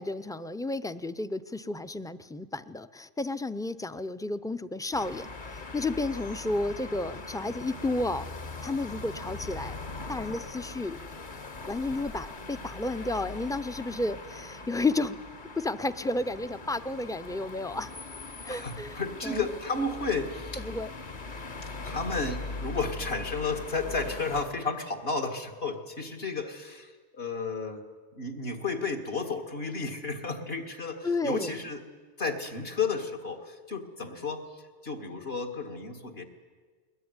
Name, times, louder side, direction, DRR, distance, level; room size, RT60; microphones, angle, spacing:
voice 1, 0.0-5.3 5.7-8.3 8.6-9.7 10.1-11.0 11.7-15.2 15.6-17.9 18.4-19.0 19.2-19.5 20.6-20.9 31.0-31.6, left 2 dB, 5° left, 12 dB, 0.4 m, -32 dB
sound 1, 4.9-24.4, left 3 dB, 50° left, 1.4 m, -41 dB
voice 2, 18.5-20.7 21.8-27.8 28.1-31.8 32.2-36.3, left 4 dB, 70° left, 4 dB, 2.4 m, -33 dB
21.0 x 21.0 x 9.7 m, 1.5 s
omnidirectional pair, 1.1 m